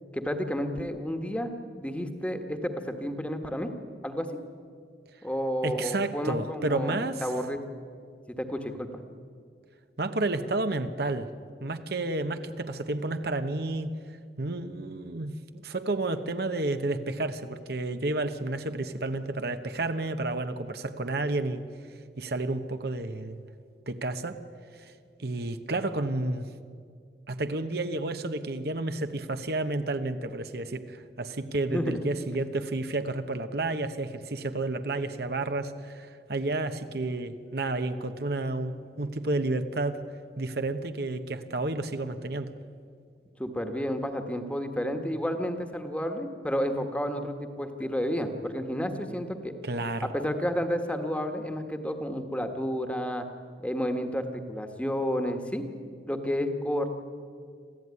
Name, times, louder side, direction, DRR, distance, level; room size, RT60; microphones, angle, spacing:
voice 1, 0.1-3.7 4.0-4.3 5.2-7.6 8.4-9.0 31.7-32.1 43.4-49.6 50.0-53.2 53.6-55.6 56.1-56.9, equal, 5° left, 6 dB, 1.5 m, -31 dB
voice 2, 5.6-7.2 10.0-11.3 11.6-13.9 14.4-21.6 22.2-23.4 23.9-24.4 24.8-24.9 25.2-26.5 27.3-40.0 40.4-42.5 49.6-50.1, right 2 dB, 60° right, 8 dB, 1.1 m, -31 dB
26.5 x 15.5 x 9.7 m, 2.2 s
head